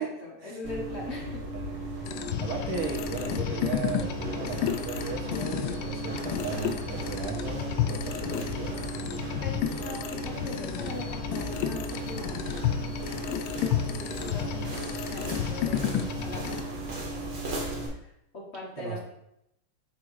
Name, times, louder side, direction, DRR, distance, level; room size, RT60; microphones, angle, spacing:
voice 1, 0.0-2.2 9.4-13.0 13.6-17.4 17.8-19.0, left 2 dB, 35° left, -3 dB, 1.3 m, -42 dB
sound 1, 0.6-17.9, right 2 dB, 75° right, 2.2 m, -36 dB
sound 2, 2.0-16.6, left 10 dB, 75° left, 1.2 m, -32 dB
voice 2, 2.4-9.3 14.2-14.8 18.8-19.0, right 5 dB, 50° right, -1 dB, 1.5 m, -36 dB
6.2 x 3.7 x 4.7 m, 0.82 s
omnidirectional pair, 2.2 m